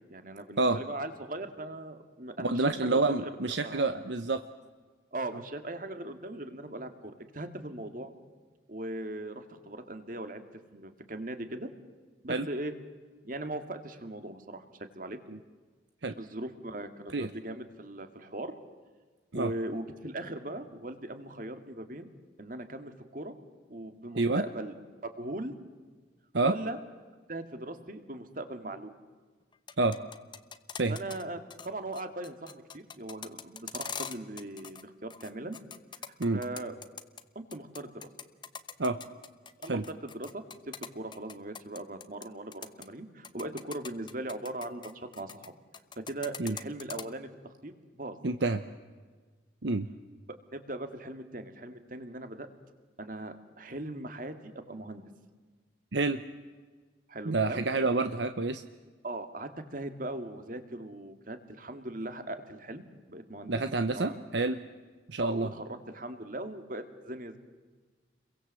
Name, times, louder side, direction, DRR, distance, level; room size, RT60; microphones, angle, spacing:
voice 1, 0.0-3.3 3.6-3.9 5.1-8.1 8.7-10.4 10.7-11.7 12.2-12.7 13.2-15.2 16.2-18.5 19.3-22.1 22.4-23.3 23.7-24.7 25.0-25.5 26.4-26.8 27.3-28.9 30.9-35.6 36.3-36.7 37.4-38.1 39.6-45.5 46.0-48.2 50.3-52.5 53.0-55.0 57.1-57.6 59.0-63.6 64.0-64.2 65.2-67.4, right 1 dB, 45° right, 8 dB, 2.2 m, -39 dB
voice 2, 2.4-4.4 12.3-12.5 15.3-15.4 16.0-16.1 17.1-17.3 19.3-19.5 24.2-24.4 26.3-26.5 29.8-30.0 30.8-31.0 36.2-36.4 38.8-39.0 39.7-39.8 46.4-46.6 48.2-48.6 49.6-49.9 55.9-56.2 57.3-58.6 63.5-64.6 65.1-65.5, right 3 dB, 70° right, 9 dB, 0.9 m, -28 dB
sound 1, 29.5-31.2 31.5-31.7 31.9-34.8 35.1-37.2 37.5-42.3 42.5-42.9 43.2-45.5 45.7-47.0, left 7 dB, 25° left, 1.0 m, -42 dB
30.0 x 23.0 x 7.8 m, 1.4 s
head